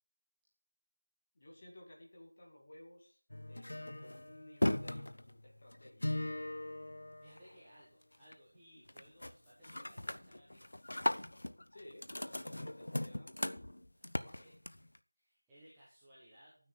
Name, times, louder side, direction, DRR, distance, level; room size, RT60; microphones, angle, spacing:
voice 1, 1.3-3.2 3.5-6.3 8.8-8.9 11.7-13.7 14.2-14.6, left 1 dB, 20° left, -2 dB, 2.5 m, -57 dB
sound 1, 3.3-7.8 8.1-8.6 8.9-9.3 9.6-15.0, left 1 dB, 40° left, 0.7 m, -39 dB
voice 2, 7.2-10.6 14.0-14.6 15.1-16.7, equal, 5° right, -12 dB, 1.3 m, -62 dB
12.0 x 9.6 x 5.9 m, 0.43 s
figure-of-eight pair, 175°, 0 cm